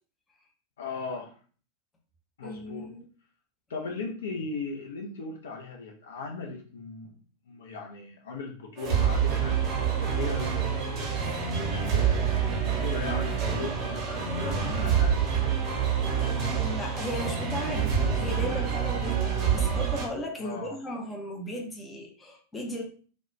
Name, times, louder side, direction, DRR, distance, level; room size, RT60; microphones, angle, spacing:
voice 1, 0.8-1.3 2.4-2.9 3.7-7.1 7.5-9.6 10.0-11.1 11.9-15.2 20.4-20.8, left 4 dB, 65° left, 1 dB, 0.5 m, -37 dB
voice 2, 2.4-3.0 16.2-22.8, left 1 dB, 15° left, 0 dB, 0.6 m, -36 dB
sound 1, 8.8-20.1, right 7 dB, 35° right, 0.7 m, -27 dB
2.3 x 2.1 x 3.0 m, 0.41 s
figure-of-eight pair, 90°, 0 cm